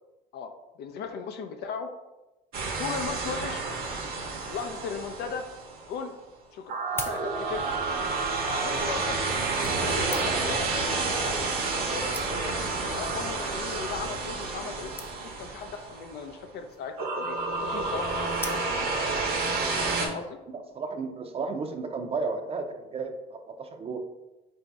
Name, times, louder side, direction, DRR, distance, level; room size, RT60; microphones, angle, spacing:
voice 1, 0.8-1.9 2.8-3.7 4.5-5.4 5.9-6.1 6.5-7.8 8.5-9.3 9.8-10.6 11.1-12.5 12.9-14.9 15.2-19.0 20.0-20.4, left 6 dB, 75° left, 6 dB, 0.5 m, -37 dB
sound 1, 2.5-5.9 6.7-16.3 17.0-20.1, right 3 dB, 60° right, 0.9 m, -30 dB
sound 2, 6.8-7.8 8.7-8.8 9.6-10.6 11.4-11.5 11.8-11.9 12.1-12.7 13.4-13.6 13.9-14.0 14.2-14.3 14.5-14.6 15.0-15.5 16.5-16.9 18.4-19.1 19.6-19.7, left 2 dB, 15° left, 0.5 m, -41 dB
voice 2, 20.5-24.0, right 4 dB, 35° right, 6 dB, 0.6 m, -33 dB
3.9 x 2.7 x 4.6 m, 1.0 s
cardioid pair, 110°, 17 cm